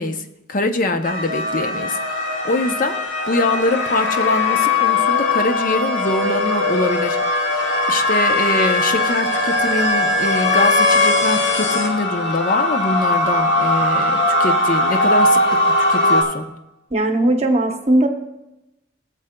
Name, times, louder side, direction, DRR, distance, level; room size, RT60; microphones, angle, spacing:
voice 1, 0.0-2.0 2.4-3.0 3.3-7.2 7.5-16.6, left 2 dB, 45° left, 7 dB, 0.6 m, -23 dB
sound 1, 1.0-16.2, left 2 dB, 75° left, 1.6 m, -19 dB
voice 2, 16.9-18.1, right 1 dB, 35° right, 5 dB, 0.8 m, -17 dB
16.0 x 7.5 x 2.2 m, 0.95 s
head